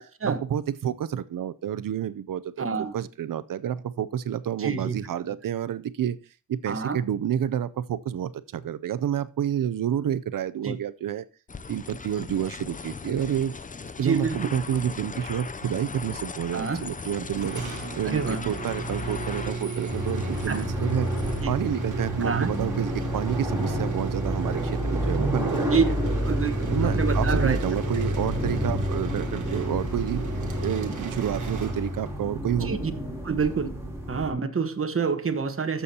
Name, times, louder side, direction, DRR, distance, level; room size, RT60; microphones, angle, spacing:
voice 1, 0.0-2.7 2.9-6.2 6.5-11.2 11.7-13.5 14.0-17.6 18.0-21.1 21.5-26.0 26.7-30.2 30.6-32.7, right 10 dB, 80° right, 0.5 m, -29 dB
voice 2, 2.6-2.9 4.6-5.0 6.7-7.0 10.6-10.7 14.0-14.5 16.5-16.8 18.0-18.4 20.5-20.6 21.4-21.6 22.2-22.5 25.7-25.8 26.3-26.7 26.9-27.6 32.7-32.9 33.2-33.7 34.1-35.8, right 5 dB, 45° right, 1.1 m, -27 dB
sound 1, 11.5-21.4, left 4 dB, 25° left, 0.5 m, -38 dB
sound 2, 17.4-32.3, right 5 dB, 65° right, 1.3 m, -34 dB
sound 3, 19.9-34.3, equal, 10° right, 3.2 m, -29 dB
13.5 x 7.0 x 2.8 m
wide cardioid pair, 80°, 32 cm